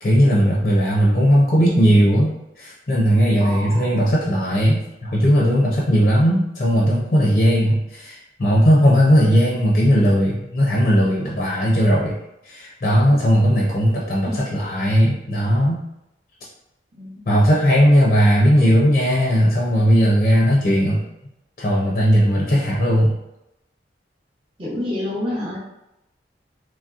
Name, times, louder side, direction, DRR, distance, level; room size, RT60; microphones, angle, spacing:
voice 1, 0.0-12.2 12.4-15.8 17.3-21.0 21.6-23.2, equal, 45° left, -4 dB, 0.5 m, -17 dB
voice 2, 3.4-4.0 14.3-14.4 16.9-17.2 24.6-25.6, left 1 dB, 30° right, -7 dB, 0.7 m, -28 dB
3.0 x 2.7 x 2.3 m, 0.88 s
head